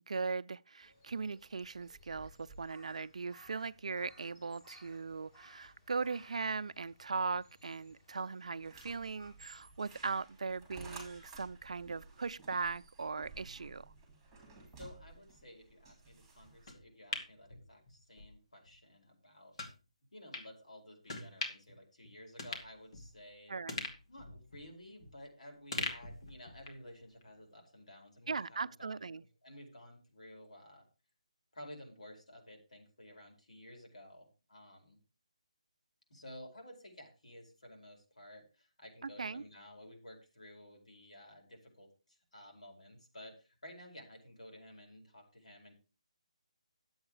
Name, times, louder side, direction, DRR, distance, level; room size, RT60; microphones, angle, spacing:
voice 1, 0.1-13.9 23.5-23.8 28.3-29.2 39.2-39.4, right 4 dB, 70° right, 0.5 m, -39 dB
Crow, 0.8-9.7, equal, 15° left, 2.5 m, -61 dB
sound 1, 8.6-16.7, right 3 dB, 5° right, 2.6 m, -54 dB
voice 2, 14.8-19.5 20.1-23.6 24.1-29.0 29.4-30.9 31.5-35.0 36.1-45.7, left 1 dB, 80° left, 4.8 m, -54 dB
sound 2, 16.7-18.3 18.7-18.8 19.6-19.7 20.3-20.5 21.1-21.7 22.0-22.1 22.4-23.3 23.7-25.3 25.7-26.9 27.2-27.3, left 2 dB, 55° left, 2.4 m, -42 dB
10.5 x 8.0 x 4.8 m
hypercardioid pair, 165°, 4 cm